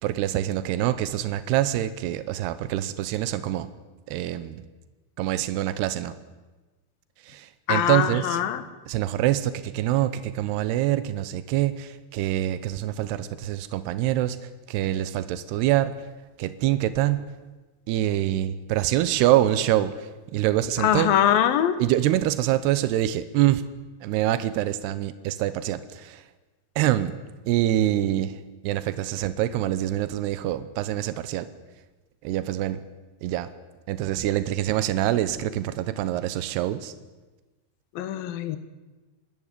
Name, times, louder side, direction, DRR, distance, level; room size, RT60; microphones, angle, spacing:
voice 1, 0.0-3.7 4.1-4.7 5.2-6.1 7.2-8.4 8.9-16.1 16.4-17.2 17.9-21.2 21.8-23.6 24.0-26.2 26.8-27.2 27.5-31.5 32.2-32.8 33.2-33.5 33.9-36.9, right 13 dB, 85° right, 13 dB, 3.0 m, -25 dB
voice 2, 7.7-8.6 20.8-21.8 38.0-38.6, left 10 dB, 70° left, 11 dB, 2.9 m, -22 dB
26.0 x 13.0 x 9.9 m, 1.2 s
omnidirectional pair, 4.7 m